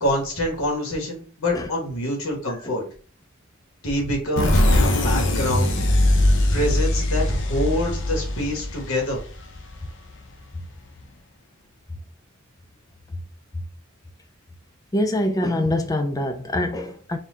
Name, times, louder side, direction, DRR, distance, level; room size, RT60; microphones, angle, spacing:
voice 1, 0.0-2.8 3.8-5.7 6.5-9.2, left 1 dB, 75° left, 1.3 m, -26 dB
sound 1, 4.4-9.9, left 1 dB, 55° left, 0.7 m, -21 dB
voice 2, 14.9-17.2, left 1 dB, 15° left, 0.4 m, -24 dB
4.3 x 2.3 x 3.7 m
head